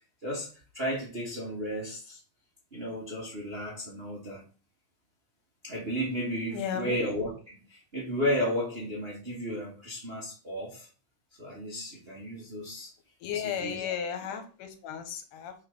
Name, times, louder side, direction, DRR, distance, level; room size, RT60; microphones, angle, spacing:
voice 1, 0.7-2.2 2.7-4.4 5.6-10.9 11.4-12.9 13.3-13.9 14.3-14.4, equal, 30° right, 1.0 m, -33 dB
voice 2, 6.5-7.0 13.2-15.5, left 8 dB, 90° left, 2.6 m, -34 dB
6.3 x 4.4 x 5.2 m
omnidirectional pair, 3.6 m